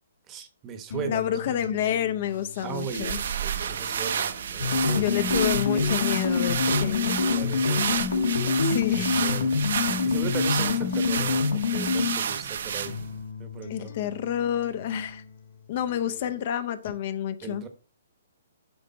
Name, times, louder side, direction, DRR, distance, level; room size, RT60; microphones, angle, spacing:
voice 1, 0.3-1.7 2.6-5.1 5.7-5.8 7.3-8.0 8.4-8.9 9.2-9.5 10.0-13.0 13.4-14.0 17.4-17.7, right 6 dB, 20° right, 1.0 m, -37 dB
sound 1, 0.9-16.9, left 4 dB, 55° left, 1.8 m, -42 dB
voice 2, 1.1-3.2 4.9-7.3 8.6-9.1 13.7-15.2 15.7-17.6, left 10 dB, 40° left, 0.6 m, -29 dB
sound 2, 2.6-13.2, right 7 dB, 60° right, 0.8 m, -31 dB
sound 3, 4.6-12.3, left 5 dB, 80° left, 1.6 m, -25 dB
7.9 x 5.2 x 4.1 m
hypercardioid pair, 165°, 0 cm